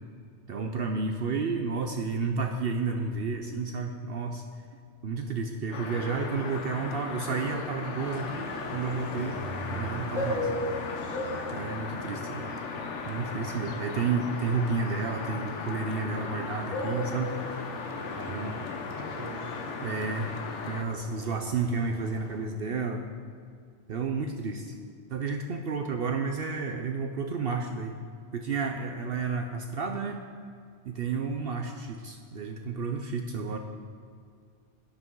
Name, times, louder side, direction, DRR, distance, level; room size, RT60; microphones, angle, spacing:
voice 1, 0.5-4.4 5.0-9.4 9.7-10.5 11.5-12.5 13.1-17.4 18.3-18.6 19.8-20.3 20.7-23.0 23.9-24.7 25.1-28.0 28.3-30.2 30.9-33.6, right 4 dB, 60° right, 4 dB, 0.8 m, -31 dB
sound 1, 5.7-20.8, left 4 dB, 85° left, 1.2 m, -37 dB
sound 2, 8.0-22.4, equal, 45° left, 2.1 m, -39 dB
voice 2, 13.3-13.8 18.2-19.6, right 2 dB, 20° right, 3 dB, 0.8 m, -44 dB
13.0 x 10.5 x 3.8 m, 2.3 s
omnidirectional pair, 1.2 m